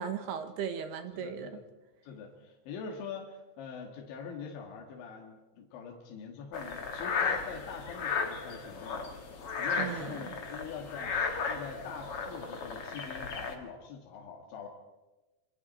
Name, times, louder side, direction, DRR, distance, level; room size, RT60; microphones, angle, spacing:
voice 1, 0.0-1.5 9.8-10.3, right 8 dB, 70° right, 8 dB, 3.0 m, -37 dB
voice 2, 1.1-1.6 2.0-11.2 11.5-14.7, left 6 dB, 75° left, 0 dB, 4.2 m, -44 dB
sound 1, 6.5-13.5, left 5 dB, 50° left, 1.8 m, -35 dB
26.5 x 24.5 x 4.4 m, 1.1 s
omnidirectional pair, 5.4 m